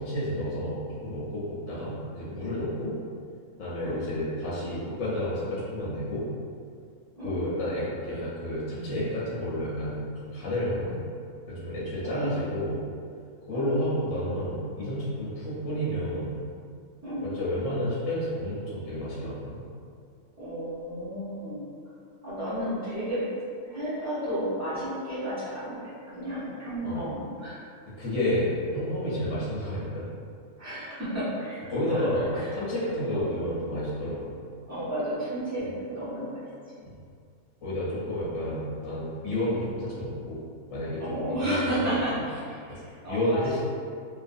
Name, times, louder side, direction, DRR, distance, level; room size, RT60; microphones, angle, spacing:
voice 1, 0.0-2.9 3.6-6.3 7.2-11.0 11.5-12.8 13.4-16.4 17.2-19.6 26.8-27.0 28.0-30.0 31.7-34.4 36.8-36.9 37.6-40.4 40.7-42.0 42.7-42.8 43.1-43.6, left 1 dB, 65° left, -8 dB, 1.0 m, -30 dB
voice 2, 20.4-21.6 22.2-23.2 23.6-27.6 30.6-32.1 32.3-32.5 33.1-33.3 34.7-36.5 36.7-36.8 41.0-43.6, equal, 15° right, -13 dB, 0.9 m, -32 dB
2.8 x 2.4 x 2.5 m, 2.2 s
omnidirectional pair, 1.5 m